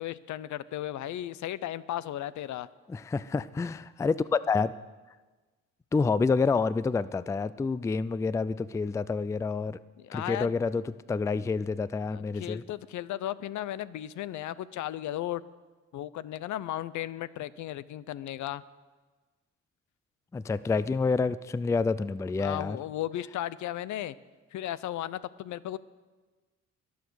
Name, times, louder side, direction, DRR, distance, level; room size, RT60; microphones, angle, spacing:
voice 1, 0.0-2.7 10.0-10.5 12.1-15.4 15.9-18.6 22.4-24.1 24.5-25.8, left 13 dB, 70° left, 17 dB, 0.6 m, -35 dB
voice 2, 2.9-4.8 5.9-9.8 10.1-12.6 20.3-22.8, left 4 dB, 10° left, 17 dB, 0.3 m, -28 dB
21.5 x 7.2 x 6.3 m, 1.3 s
cardioid pair, 90°, 30 cm